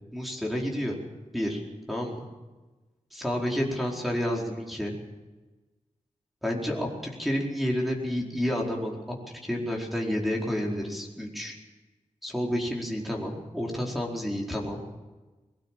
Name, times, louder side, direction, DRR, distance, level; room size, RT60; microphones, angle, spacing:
voice 1, 0.1-1.0 1.3-1.6 1.9-2.3 3.1-4.9 6.4-9.2 9.4-11.5 12.2-14.8, equal, ahead, -3 dB, 4.6 m, -30 dB
22.0 x 16.0 x 7.5 m, 1.2 s
cardioid pair, 70°, 13 cm